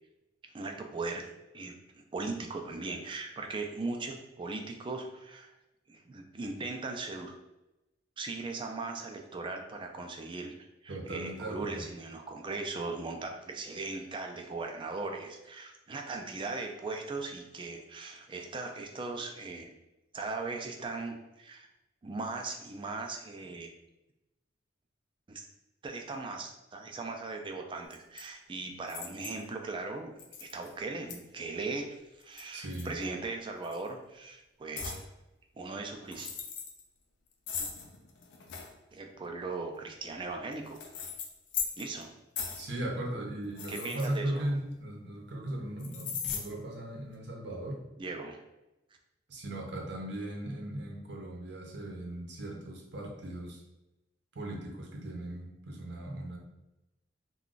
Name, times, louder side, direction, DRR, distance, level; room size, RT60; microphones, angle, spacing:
voice 1, 0.5-5.5 5.9-7.3 8.2-10.5 10.8-19.7 20.1-21.7 22.0-23.7 25.3-25.5 25.8-30.1 30.4-31.9 32.2-35.0 35.6-36.3 38.9-41.1 41.8-42.1 43.7-44.5 48.0-48.4, right 3 dB, 25° right, 3 dB, 0.4 m, -39 dB
voice 2, 10.9-11.8 32.5-32.9 42.6-47.8 49.3-53.6 54.3-56.4, right 1 dB, 65° right, -1 dB, 0.7 m, -37 dB
sound 1, 27.9-28.2 28.9-29.4 30.2-30.7 31.1-31.2 32.2-33.2 33.6-33.9 34.8-35.0 36.0-36.8 37.5-38.7 39.7-42.0 42.4-42.7 43.4-44.7 45.8-46.4, left 6 dB, 70° left, 0.5 m, -39 dB
2.4 x 2.3 x 3.7 m, 0.96 s
head